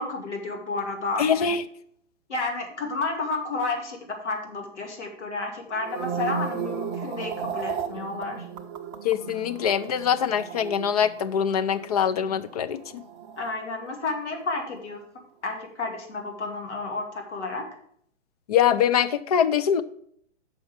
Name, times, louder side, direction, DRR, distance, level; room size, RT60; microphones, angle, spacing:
voice 1, 0.0-1.5 2.3-8.4 13.4-15.1 15.4-17.7, left 3 dB, 65° left, 2.3 m, -31 dB
voice 2, 1.2-1.6 9.0-13.0 18.5-19.8, left 8 dB, 35° left, 0.5 m, -23 dB
sound 1, 5.7-14.1 14.4-14.8, right 7 dB, 25° right, 0.6 m, -35 dB
6.9 x 5.5 x 6.9 m
figure-of-eight pair, 125°, 37 cm